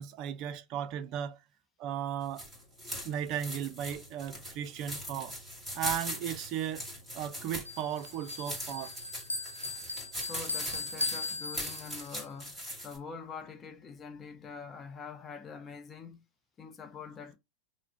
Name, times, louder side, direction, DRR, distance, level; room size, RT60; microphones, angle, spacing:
voice 1, 0.0-1.4 1.8-2.5 3.0-5.4 5.7-6.9 7.1-8.9, right 10 dB, 40° right, 0.6 m, -36 dB
sound 1, 2.2-13.0, equal, 5° right, 2.3 m, -41 dB
Bell, 7.7-12.2, left 3 dB, 85° left, 0.7 m, -38 dB
voice 2, 10.3-12.5 12.8-16.2 16.6-17.4, left 5 dB, 25° left, 0.8 m, -45 dB
5.9 x 2.2 x 3.7 m
figure-of-eight pair, 90°, 0 cm